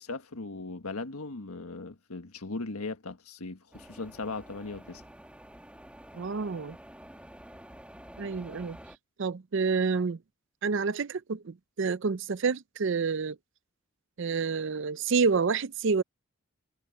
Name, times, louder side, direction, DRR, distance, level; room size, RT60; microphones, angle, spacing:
voice 1, 0.0-5.0, left 3 dB, 85° left, 1.6 m, -38 dB
sound 1, 3.7-9.0, equal, 5° right, 1.9 m, -49 dB
voice 2, 6.1-6.8 8.2-8.8 9.2-10.2 10.6-13.4 14.2-16.0, right 5 dB, 55° right, 0.5 m, -28 dB
head